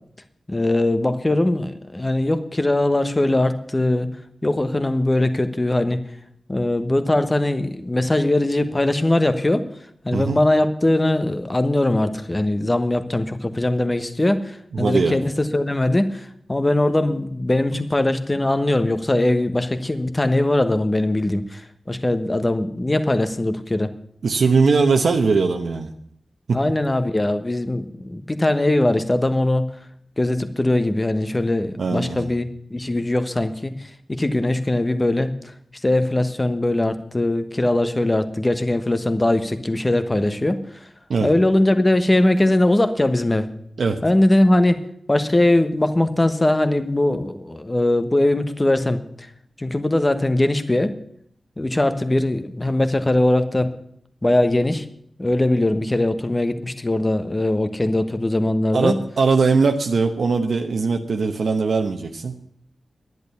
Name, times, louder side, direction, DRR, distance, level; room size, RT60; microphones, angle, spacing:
voice 1, 0.5-4.1 4.4-6.0 6.5-9.6 10.0-16.1 16.5-21.6 21.9-23.9 26.5-29.7 30.2-33.7 34.1-35.3 35.8-40.6 41.2-43.5 44.0-49.0 49.6-50.9 51.6-53.7 54.2-54.8 55.2-59.0, left 1 dB, 20° left, 9 dB, 1.2 m, -20 dB
voice 2, 14.7-15.2 24.2-25.9 26.5-26.6 31.8-32.3 41.1-41.3 43.8-44.0 58.7-62.3, right 4 dB, 80° right, 3 dB, 1.0 m, -20 dB
11.0 x 10.5 x 6.9 m, 0.67 s
wide cardioid pair, 85°, 0 cm